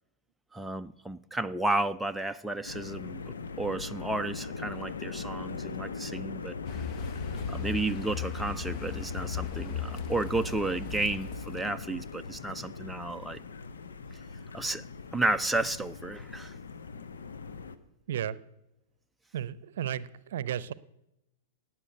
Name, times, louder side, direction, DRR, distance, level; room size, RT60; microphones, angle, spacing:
voice 1, 0.5-3.2 3.6-6.5 7.5-13.4 14.5-14.8 15.1-16.5, right 2 dB, 5° right, 0.5 m, -32 dB
sound 1, 2.6-17.8, left 4 dB, 75° left, 1.1 m, -41 dB
Car, 6.6-11.8, left 5 dB, 40° left, 1.2 m, -37 dB
voice 2, 18.1-18.4 19.3-20.7, right 10 dB, 60° right, 0.7 m, -33 dB
18.5 x 7.3 x 8.0 m
figure-of-eight pair, 105°, 0 cm